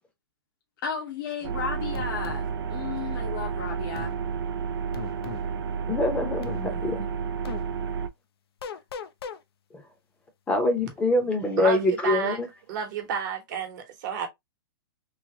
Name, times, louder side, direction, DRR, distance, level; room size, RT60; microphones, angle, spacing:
voice 1, 0.8-4.1 6.8-6.9, left 6 dB, 55° left, 0.8 m, -34 dB
sound 1, 1.4-8.1, right 6 dB, 75° right, 0.4 m, -31 dB
sound 2, 1.9-2.4 3.9-4.1 4.9-5.5 6.4-6.6 7.4-7.6 8.6-9.4, left 7 dB, 80° left, 0.5 m, -37 dB
voice 2, 5.9-7.1 9.7-9.8 10.5-12.5, left 2 dB, 10° left, 0.6 m, -25 dB
voice 3, 11.6-12.4 12.7-14.3, right 7 dB, 50° right, 1.0 m, -30 dB
3.2 x 2.1 x 2.7 m
hypercardioid pair, 155°, 13 cm